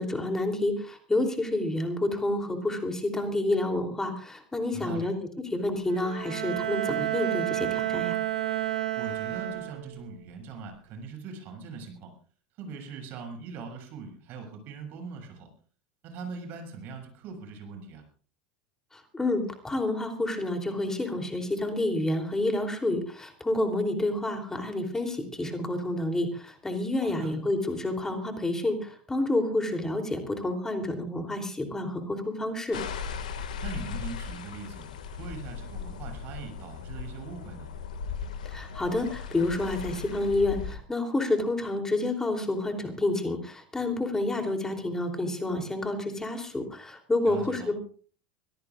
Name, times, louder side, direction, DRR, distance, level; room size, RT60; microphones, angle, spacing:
voice 1, 0.0-5.1 5.4-8.2 18.9-32.8 38.4-47.8, left 2 dB, 10° left, 4 dB, 3.1 m, -29 dB
voice 2, 4.7-5.1 8.9-12.1 12.6-15.5 16.0-18.1 27.0-27.3 33.6-37.7 47.2-47.7, right 4 dB, 50° right, 4 dB, 7.1 m, -41 dB
Bowed string instrument, 5.9-10.0, right 13 dB, 75° right, 5.3 m, -30 dB
sound 1, 32.7-40.8, left 6 dB, 75° left, 1.9 m, -37 dB
24.5 x 17.5 x 2.5 m, 0.44 s
hypercardioid pair, 85°, 4 cm